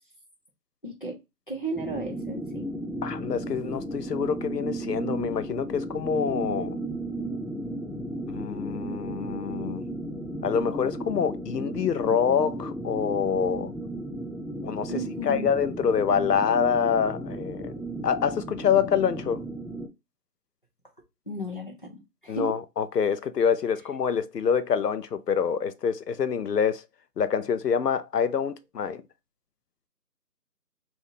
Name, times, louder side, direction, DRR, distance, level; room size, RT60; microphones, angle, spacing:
voice 1, 0.8-1.2 1.5-2.7 14.9-15.5 21.3-22.6, right 1 dB, 30° left, 0.8 m, -34 dB
sound 1, 1.7-19.9, right 1 dB, 5° right, 0.3 m, -34 dB
voice 2, 3.0-6.8 8.3-9.8 10.4-13.7 14.6-14.9 15.2-17.7 18.0-19.4 22.3-26.8 27.2-29.0, left 7 dB, 75° left, 0.7 m, -26 dB
3.5 x 2.6 x 2.7 m
figure-of-eight pair, 175°, 48 cm